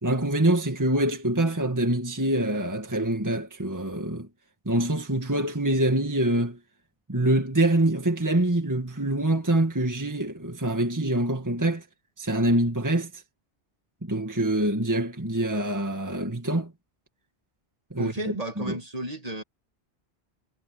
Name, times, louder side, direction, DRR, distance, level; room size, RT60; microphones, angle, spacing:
voice 1, 0.0-4.3 4.7-6.6 7.1-11.9 12.2-13.2 14.0-16.7 17.9-18.1 18.6-18.8, right 1 dB, 15° right, 1.8 m, -25 dB
voice 2, 18.0-19.4, right 1 dB, 35° right, 2.4 m, -33 dB
omnidirectional pair, 1.1 m